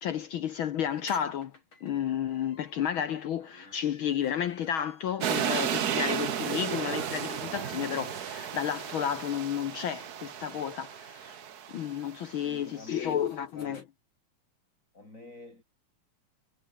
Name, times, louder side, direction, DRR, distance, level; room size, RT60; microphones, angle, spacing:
voice 1, 0.0-1.5 1.8-11.4 11.7-13.8, left 9 dB, 70° left, 1.2 m, -32 dB
sound 1, 0.8-9.4 9.8-9.9 10.1-10.2 10.4-13.8, left 2 dB, 40° left, 7.7 m, -54 dB
sound 2, 5.2-12.3, right 9 dB, 75° right, 0.9 m, -33 dB
voice 2, 12.3-13.2 13.5-13.9 14.9-15.6, left 2 dB, 25° left, 7.2 m, -47 dB
omnidirectional pair, 3.3 m